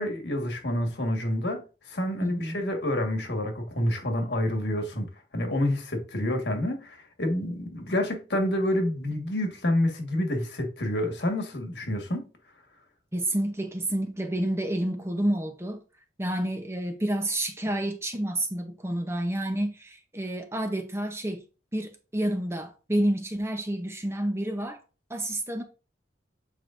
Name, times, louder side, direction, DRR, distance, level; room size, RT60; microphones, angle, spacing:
voice 1, 0.0-1.6 1.9-12.3, left 1 dB, 70° left, 1.6 m, -28 dB
voice 2, 2.2-2.6 13.1-15.8 16.2-21.4 21.7-24.8 25.1-25.6, right 1 dB, 15° right, 0.7 m, -29 dB
8.2 x 4.6 x 2.6 m
head